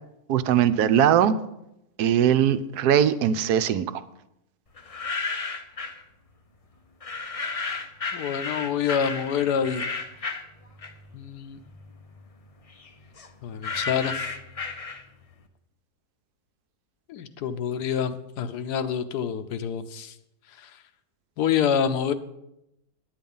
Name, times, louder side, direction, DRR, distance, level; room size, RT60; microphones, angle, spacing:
voice 1, 0.3-1.4 2.0-3.9, right 9 dB, 80° right, 12 dB, 1.1 m, -20 dB
sound 1, 4.8-6.0 7.0-11.2 11.6-15.3, left 4 dB, 45° left, 0.4 m, -33 dB
voice 2, 8.1-9.9 11.1-11.6 13.4-14.3 17.1-20.1 20.6-20.7 21.4-22.1, left 8 dB, 90° left, 10 dB, 1.3 m, -27 dB
9.7 x 9.0 x 5.4 m, 0.84 s
omnidirectional pair, 1.7 m